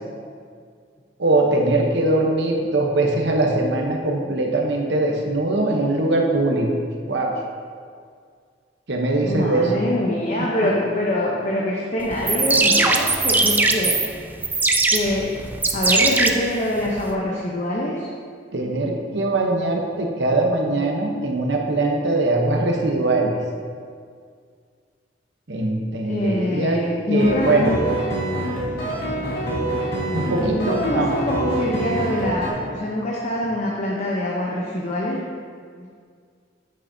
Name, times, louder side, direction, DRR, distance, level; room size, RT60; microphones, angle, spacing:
voice 1, 1.2-6.7 7.1-7.3 8.9-9.8 10.4-10.5 18.5-23.4 25.5-26.8 27.1-27.8 30.1-31.1, right 2 dB, 70° right, 0 dB, 0.9 m, -21 dB
voice 2, 9.3-13.9 14.9-15.3 15.7-18.1 26.0-27.9 30.4-35.2 35.8-35.9, left 1 dB, 40° left, -4 dB, 0.8 m, -24 dB
sound 1, 12.1-17.1, right 3 dB, 10° right, 0.3 m, -20 dB
sound 2, 27.2-32.5, right 1 dB, 60° left, 1.7 m, -26 dB
8.9 x 6.3 x 2.7 m, 2.1 s
head